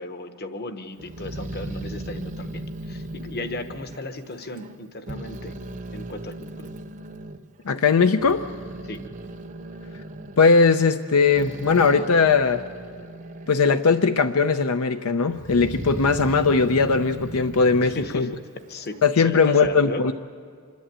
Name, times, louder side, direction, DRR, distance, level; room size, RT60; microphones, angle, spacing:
voice 1, 0.0-5.5 5.9-6.7 8.8-9.0 17.8-18.3 18.7-20.1, left 2 dB, 45° left, 9 dB, 1.1 m, -35 dB
Growling, 1.0-4.8 5.1-7.4 7.9-13.8 14.1-14.8 15.3-19.0, right 1 dB, 35° right, 0.7 m, -37 dB
voice 2, 7.7-8.4 10.4-12.6 13.5-18.3 19.0-20.1, left 4 dB, 80° left, 8 dB, 0.6 m, -19 dB
26.5 x 11.5 x 8.8 m, 2.2 s
head